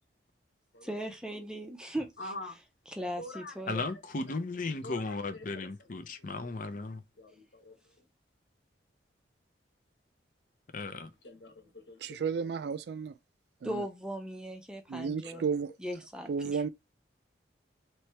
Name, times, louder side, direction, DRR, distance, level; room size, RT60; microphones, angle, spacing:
voice 1, 0.8-2.1 3.0-3.9 13.6-15.4 15.8-16.6, equal, 5° right, 0.5 m, -38 dB
voice 2, 2.2-2.6 3.2-3.6 4.3-4.4 4.8-5.7 6.0-6.5 7.2-8.1 11.2-12.5 15.2-15.4, left 1 dB, 70° left, 1.5 m, -46 dB
voice 3, 3.7-7.0 10.7-11.1, left 3 dB, 45° left, 0.6 m, -35 dB
voice 4, 12.0-13.2 13.6-13.8 14.9-15.7 16.3-16.7, right 6 dB, 60° right, 0.3 m, -33 dB
3.1 x 3.1 x 4.5 m
head